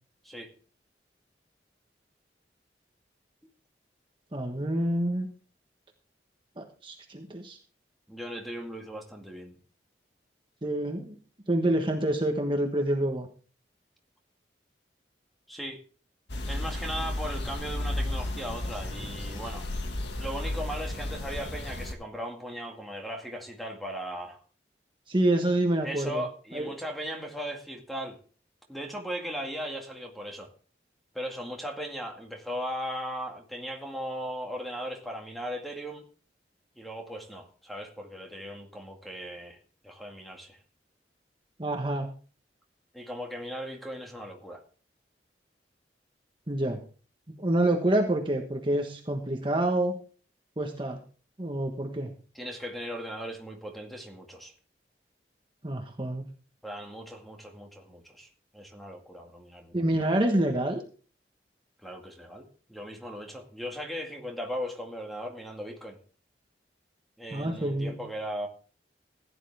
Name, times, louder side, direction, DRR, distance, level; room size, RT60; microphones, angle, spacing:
voice 1, 4.3-5.3 6.6-7.6 10.6-11.2 11.5-13.3 25.1-26.2 26.5-26.7 41.6-42.1 46.5-46.8 47.3-50.0 50.6-51.0 51.4-52.1 55.6-56.3 59.7-60.8 67.3-68.0, right 1 dB, 30° right, 1.3 m, -27 dB
voice 2, 8.1-9.6 15.5-15.8 16.5-19.7 20.2-24.4 25.8-28.2 28.7-30.5 31.1-36.0 36.8-39.6 39.8-40.6 42.9-44.6 52.3-54.5 56.6-59.8 61.8-66.0 67.2-68.5, equal, ahead, 2.1 m, -38 dB
sound 1, 16.3-21.9, left 1 dB, 75° left, 1.8 m, -33 dB
15.5 x 10.0 x 3.5 m
head